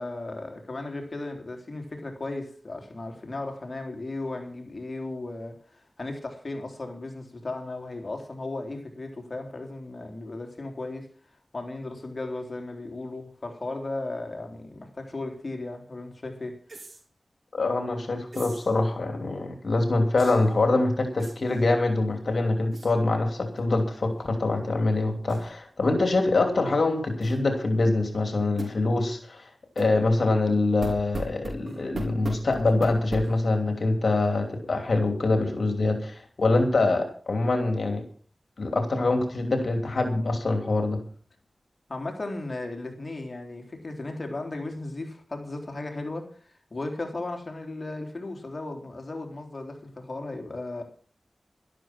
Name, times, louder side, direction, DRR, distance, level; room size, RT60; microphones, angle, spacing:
voice 1, 0.0-11.1 11.5-16.6 41.9-50.8, left 2 dB, 55° left, 3.8 m, -36 dB
sound 1, 16.7-17.0 18.3-18.7 20.2-20.5 21.2-21.6 22.7-22.9 23.5-23.8 24.1-24.2 25.3-25.5 27.2-27.4 28.6-28.8 29.8-29.9 30.8-33.5, right 2 dB, 65° right, 4.4 m, -38 dB
voice 2, 17.5-29.5 29.8-38.0 38.6-41.0, left 2 dB, 75° left, 2.9 m, -24 dB
12.5 x 12.5 x 6.1 m
cardioid pair, 45°, 0 cm